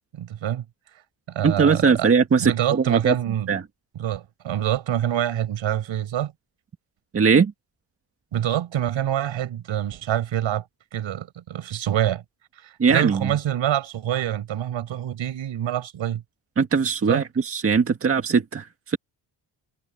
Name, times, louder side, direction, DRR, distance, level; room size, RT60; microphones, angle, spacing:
voice 1, 0.1-0.6 1.3-2.1 2.4-3.5 4.0-6.3 8.3-10.6 10.9-12.2 12.6-16.2 17.1-17.2, right 11 dB, 75° right, 5.1 m, -26 dB
voice 2, 1.4-3.2 3.5-3.6 7.1-7.5 12.8-13.3 16.6-19.0, right 5 dB, 30° right, 1.8 m, -20 dB
wide cardioid pair, 170°, 46 cm